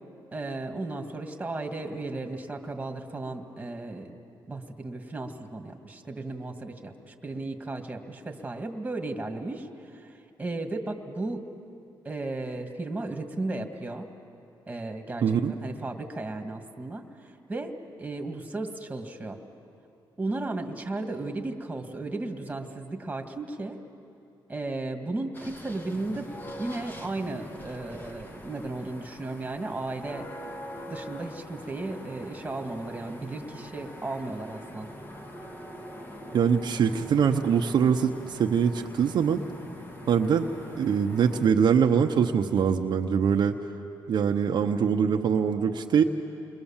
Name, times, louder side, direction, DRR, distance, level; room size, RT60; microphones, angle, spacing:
voice 1, 0.3-4.2 4.5-11.4 12.0-14.1 14.7-19.4 20.2-23.8 24.5-26.3 26.6-30.3 30.9-34.9, right 2 dB, 15° right, 4 dB, 2.1 m, -35 dB
voice 2, 15.2-15.5 36.3-39.4 40.1-40.5 40.8-43.6 44.1-46.0, right 7 dB, 60° right, 3 dB, 1.0 m, -23 dB
sound 1, 25.3-41.5, equal, 25° left, 2.0 m, -43 dB
29.0 x 22.0 x 7.3 m, 2.7 s
cardioid pair, 100°, 8 cm